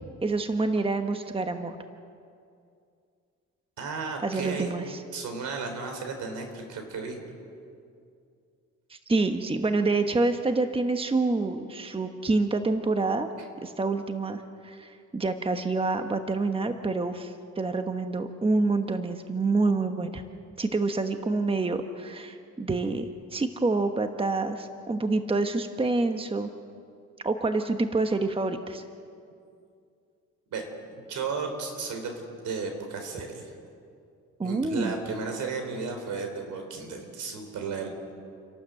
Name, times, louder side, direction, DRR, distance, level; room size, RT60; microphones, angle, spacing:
voice 1, 0.2-1.8 4.2-5.0 8.9-13.3 13.6-20.2 20.6-26.5 27.2-28.8 34.4-34.9, right 3 dB, 20° right, 7 dB, 1.1 m, -27 dB
voice 2, 3.8-4.7 5.1-7.2 30.5-30.6 30.9-32.1 32.4-33.5 34.4-37.9, right 4 dB, 75° right, 5 dB, 4.1 m, -34 dB
29.0 x 12.0 x 7.8 m, 2.4 s
cardioid pair, 90°, 30 cm